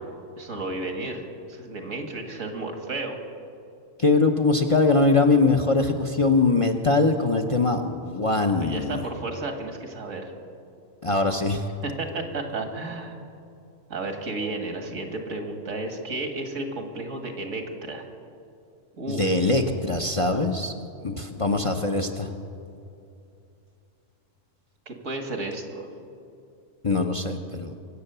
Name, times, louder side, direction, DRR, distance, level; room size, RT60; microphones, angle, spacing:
voice 1, 0.4-3.2 8.6-10.3 11.8-13.2 13.9-18.0 19.0-19.2 24.9-25.9, right 2 dB, 75° right, 4 dB, 2.0 m, -33 dB
voice 2, 4.0-9.0 11.0-11.7 19.1-20.7 21.0-22.3 26.8-27.7, left 3 dB, 30° left, 4 dB, 0.7 m, -22 dB
24.0 x 8.1 x 6.8 m, 2.6 s
omnidirectional pair, 1.3 m